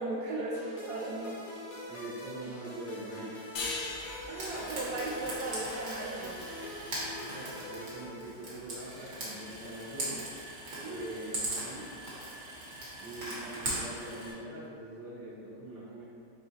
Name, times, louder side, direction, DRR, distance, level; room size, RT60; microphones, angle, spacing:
voice 1, 0.0-1.4 4.3-6.4 10.8-11.0, right 2 dB, 75° right, -4 dB, 1.1 m, -36 dB
sound 1, 0.5-8.8, left 1 dB, 50° left, 0.6 m, -45 dB
voice 2, 1.9-3.4 7.2-10.3 10.8-11.9 13.0-16.0, right 1 dB, 30° right, -10 dB, 1.4 m, -43 dB
sound 2, 3.6-6.7, left 3 dB, 90° left, 1.2 m, -40 dB
Frying (food), 4.4-14.3, right 1 dB, 50° right, 1.4 m, -40 dB
4.6 x 3.9 x 2.9 m, 2.4 s
omnidirectional pair, 1.7 m